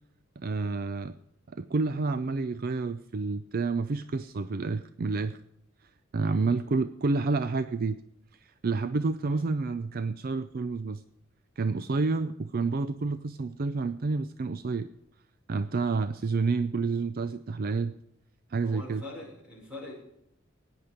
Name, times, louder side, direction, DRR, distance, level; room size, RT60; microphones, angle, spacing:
voice 1, 0.4-1.1 1.5-5.4 6.1-8.0 8.4-11.0 11.6-14.9 15.5-17.9 18.5-19.0, right 4 dB, 45° right, 12 dB, 0.4 m, -29 dB
voice 2, 6.2-6.6 9.2-9.4 18.6-19.9, left 1 dB, 5° right, -2 dB, 5.3 m, -43 dB
16.5 x 9.8 x 5.1 m, 0.76 s
head